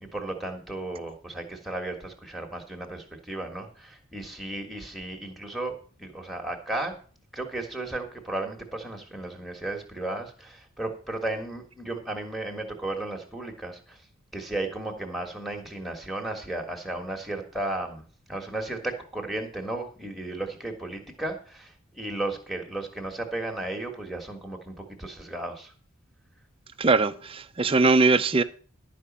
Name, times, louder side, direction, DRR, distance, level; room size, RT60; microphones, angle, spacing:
voice 1, 0.0-6.9 7.3-14.0 14.3-18.0 18.3-25.7, right 2 dB, ahead, 1.5 m, -34 dB
voice 2, 26.8-28.4, right 3 dB, 25° right, 0.5 m, -21 dB
11.5 x 5.1 x 7.3 m
head